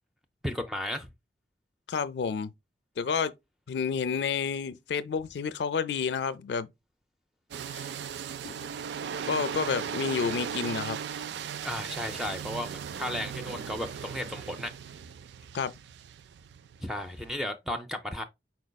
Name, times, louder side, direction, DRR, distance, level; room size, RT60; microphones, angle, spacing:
voice 1, 0.4-1.1 11.6-14.7 16.8-18.2, left 1 dB, ahead, 0.5 m, -34 dB
voice 2, 1.9-2.5 3.0-3.3 3.7-6.7 7.7-8.0 8.4-8.5 9.3-11.0 15.5-15.7, left 6 dB, 75° left, 0.4 m, -30 dB
sound 1, 7.5-17.4, right 7 dB, 80° right, 0.3 m, -37 dB
5.1 x 4.6 x 2.2 m
head